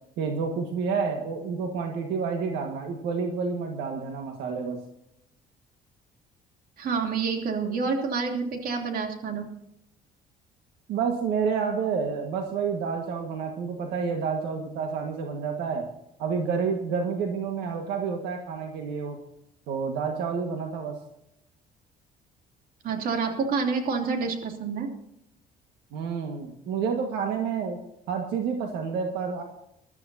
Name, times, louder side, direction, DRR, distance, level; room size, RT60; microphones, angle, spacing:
voice 1, 0.2-4.8 10.9-15.9 16.2-19.2 19.7-21.0 25.9-27.8 28.1-29.4, right 5 dB, 85° right, 3 dB, 1.7 m, -29 dB
voice 2, 6.8-9.5 22.8-24.9, right 5 dB, 60° right, 3 dB, 3.0 m, -28 dB
22.0 x 13.0 x 2.8 m, 0.80 s
cardioid pair, 110°, 17 cm